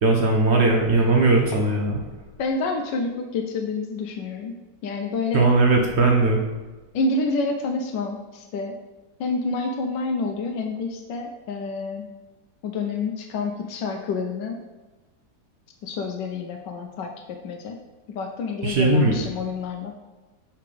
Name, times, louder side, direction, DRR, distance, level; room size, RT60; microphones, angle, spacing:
voice 1, 0.0-2.0 5.3-6.4 18.6-19.2, right 3 dB, 65° right, 1 dB, 0.7 m, -19 dB
voice 2, 2.4-4.5 4.8-5.5 6.9-8.7 9.2-12.0 12.6-14.6 15.8-17.1 17.4-17.8 18.1-19.9, left 3 dB, 85° left, 3 dB, 1.2 m, -28 dB
5.7 x 3.3 x 5.2 m, 1.2 s
omnidirectional pair, 1.9 m